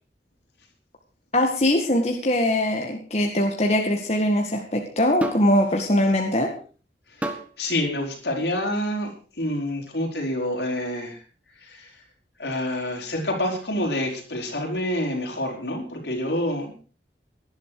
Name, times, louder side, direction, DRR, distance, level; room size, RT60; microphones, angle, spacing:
voice 1, 1.3-6.5, left 1 dB, 40° left, 2 dB, 2.0 m, -22 dB
sound 1, 5.2-5.6 7.2-7.5 8.6-8.8, right 1 dB, 10° right, 1.5 m, -30 dB
voice 2, 7.6-9.1 9.4-11.2 11.6-11.9 12.4-16.7, left 1 dB, 75° left, 2 dB, 4.9 m, -27 dB
18.5 x 11.5 x 5.0 m, 0.39 s
head